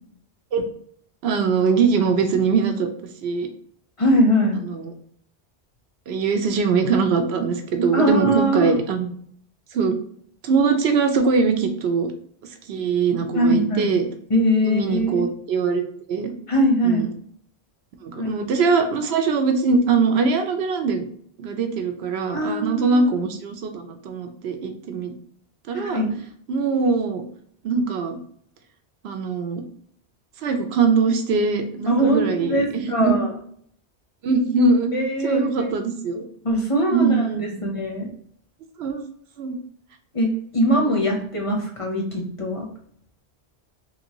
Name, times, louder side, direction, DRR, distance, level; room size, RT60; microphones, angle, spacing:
voice 1, 1.2-2.9 3.2-3.5 4.7-4.9 6.1-9.1 9.7-10.0 10.4-12.1 12.7-14.1 14.6-15.8 16.1-16.3 16.8-17.1 18.0-21.1 21.4-25.1 25.7-26.0 26.5-27.2 27.6-28.2 29.0-29.6 30.4-33.2 34.2-34.9 35.2-36.2 36.9-37.6 38.8-39.0 39.4-39.6 40.7-41.0, right 4 dB, 70° right, 6 dB, 0.8 m, -22 dB
voice 2, 4.0-4.7 7.9-8.8 13.3-13.9 14.3-15.3 16.5-17.1 18.2-18.3 22.3-23.3 25.7-26.2 31.9-33.3 34.9-35.7 36.4-38.1 40.1-42.7, equal, 35° left, 1 dB, 0.6 m, -22 dB
3.2 x 2.6 x 2.9 m, 0.62 s
omnidirectional pair, 1.1 m